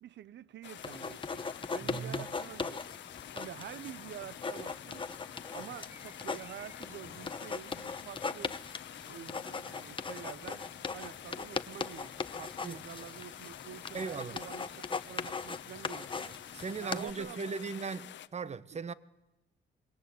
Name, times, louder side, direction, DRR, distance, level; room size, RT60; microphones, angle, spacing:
voice 1, 0.0-2.8 3.3-5.0 5.5-8.6 9.1-12.1 12.4-16.4 16.8-17.5 18.7-18.8, right 10 dB, 65° right, 0.8 m, -48 dB
sound 1, 0.6-18.3, left 11 dB, 65° left, 0.9 m, -49 dB
sound 2, 0.8-17.1, left 4 dB, 25° left, 1.0 m, -40 dB
voice 2, 1.8-2.2 12.6-12.8 13.9-14.4 16.5-18.1 18.3-18.9, right 5 dB, 35° right, 1.0 m, -38 dB
sound 3, 5.6-9.2, left 1 dB, 10° right, 1.9 m, -61 dB
26.0 x 20.5 x 8.4 m
cardioid pair, 90°, 20 cm